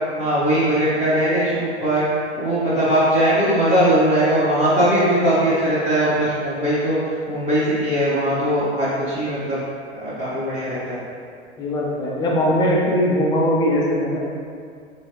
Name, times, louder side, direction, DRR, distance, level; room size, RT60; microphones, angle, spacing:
voice 1, 0.2-2.0 2.3-7.0 7.3-9.6 9.9-11.0, right 1 dB, 20° right, -13 dB, 0.9 m, -20 dB
voice 2, 11.6-14.2, equal, 10° left, -3 dB, 0.4 m, -20 dB
3.8 x 3.1 x 2.8 m, 2.3 s
figure-of-eight pair, 100°, 35 cm